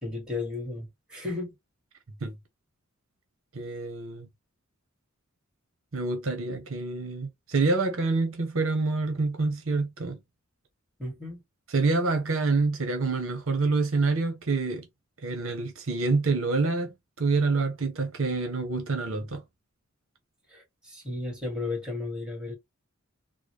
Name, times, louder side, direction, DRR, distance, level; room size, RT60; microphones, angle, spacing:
voice 1, 0.0-1.5 11.0-11.4 20.5-22.5, left 2 dB, 5° right, 1.8 m, -34 dB
voice 2, 3.5-4.3 5.9-10.2 11.7-14.9 15.2-19.4, right 3 dB, 70° right, 0.9 m, -27 dB
3.8 x 2.1 x 3.2 m
head